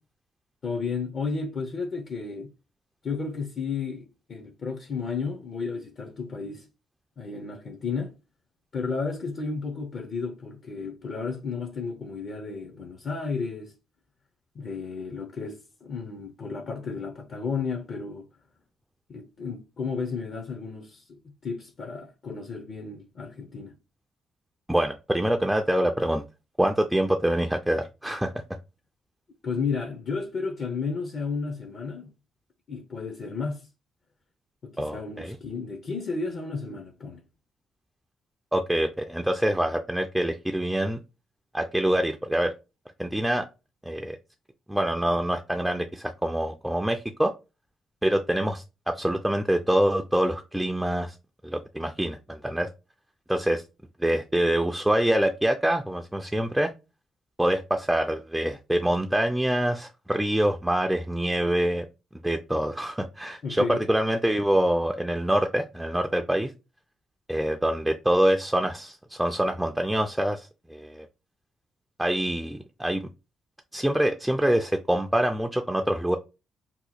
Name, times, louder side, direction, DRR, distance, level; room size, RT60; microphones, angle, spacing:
voice 1, 0.6-2.5 3.0-6.7 7.2-8.1 8.7-13.7 14.5-18.3 19.1-23.7 29.4-32.1 32.7-33.7 34.6-37.2 63.4-63.8, left 4 dB, 50° left, 0.6 m, -33 dB
voice 2, 24.7-26.2 26.6-28.3 34.8-35.4 38.5-41.0 41.5-42.5 43.0-43.4 43.8-44.2 44.7-47.3 48.0-51.1 51.4-52.7 53.3-53.6 54.0-56.7 57.4-61.9 62.2-66.5 67.3-71.1 72.0-73.1 73.7-76.2, right 1 dB, 5° right, 0.3 m, -25 dB
2.8 x 2.2 x 4.0 m
cardioid pair, 90°, 0 cm